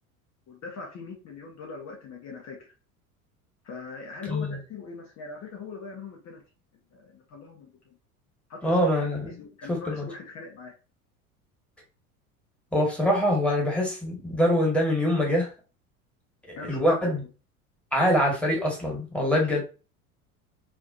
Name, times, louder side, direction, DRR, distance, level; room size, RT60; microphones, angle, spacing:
voice 1, 0.5-2.7 3.6-6.4 6.7-7.9 8.5-8.9 9.3-10.7 16.6-17.3 19.3-19.6, left 4 dB, 35° left, -1 dB, 1.5 m, -41 dB
voice 2, 4.3-4.6 8.6-9.3 9.7-10.1 12.7-15.5 16.5-17.2 17.9-19.6, equal, 5° left, -2 dB, 1.9 m, -24 dB
4.8 x 3.0 x 2.7 m, 0.33 s
figure-of-eight pair, 75°, 44 cm